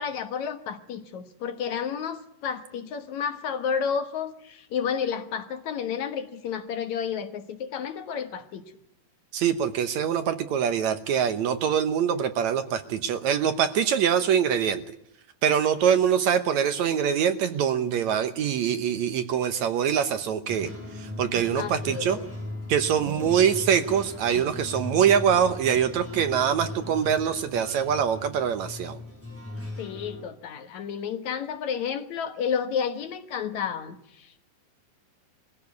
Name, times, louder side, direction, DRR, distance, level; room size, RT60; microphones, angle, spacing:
voice 1, 0.0-8.6 21.6-22.3 23.3-23.4 29.8-34.4, left 7 dB, 65° left, 8 dB, 2.5 m, -31 dB
voice 2, 9.3-14.8 15.4-20.7 21.0-22.2 22.7-29.0, right 8 dB, 70° right, 10 dB, 2.1 m, -24 dB
sound 1, 20.5-30.2, left 2 dB, 5° right, 5.7 m, -38 dB
22.0 x 15.5 x 9.5 m, 0.73 s
omnidirectional pair, 3.8 m